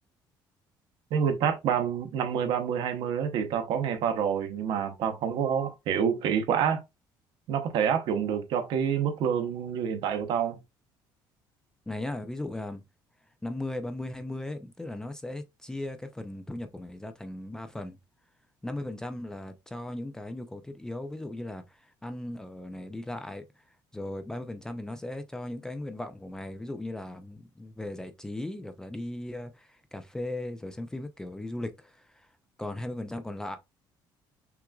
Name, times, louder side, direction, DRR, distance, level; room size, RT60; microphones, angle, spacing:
voice 1, 1.1-6.8 7.5-10.6, right 8 dB, 65° right, 0.8 m, -27 dB
voice 2, 11.9-12.8 13.4-18.0 18.6-21.6 22.0-23.4 23.9-32.3 32.6-33.6, left 1 dB, 5° left, 0.4 m, -37 dB
5.8 x 2.5 x 2.3 m
cardioid pair, 160°, 9 cm